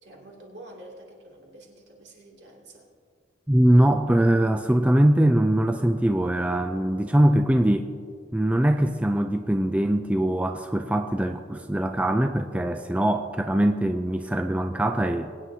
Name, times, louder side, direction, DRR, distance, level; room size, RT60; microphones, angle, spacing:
voice 1, 0.0-2.9, right 1 dB, 65° right, -2 dB, 2.7 m, -47 dB
voice 2, 3.5-7.9 8.3-15.3, right 1 dB, 5° right, 6 dB, 0.3 m, -22 dB
22.5 x 9.4 x 2.8 m, 2.1 s
head